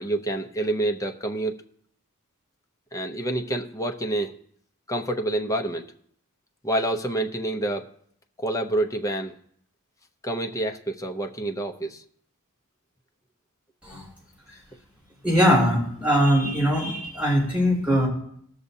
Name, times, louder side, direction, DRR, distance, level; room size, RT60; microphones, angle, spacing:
voice 1, 0.0-1.5 2.9-4.4 4.9-5.9 6.6-7.9 8.4-9.3 10.2-12.0, right 1 dB, 15° left, 4 dB, 0.8 m, -27 dB
voice 2, 15.2-18.1, equal, 5° right, -6 dB, 4.5 m, -21 dB
19.5 x 6.6 x 2.8 m, 0.67 s
head